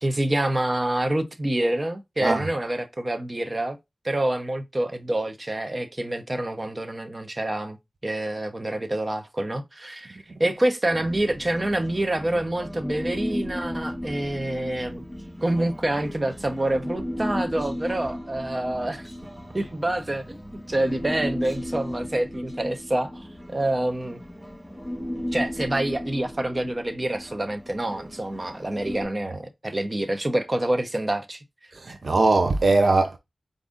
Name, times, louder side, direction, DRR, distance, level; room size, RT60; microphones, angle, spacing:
voice 1, 0.0-3.8 4.0-7.8 8.0-15.0 15.4-19.1 19.5-20.4 20.7-23.3 23.5-24.2 25.3-31.4, right 1 dB, 35° right, 0.8 m, -27 dB
Human voice, 10.9-29.1, equal, 5° left, 2.1 m, -35 dB
voice 2, 31.7-33.2, right 3 dB, 70° right, 0.5 m, -20 dB
4.7 x 2.7 x 3.7 m
wide cardioid pair, 60°, 0 cm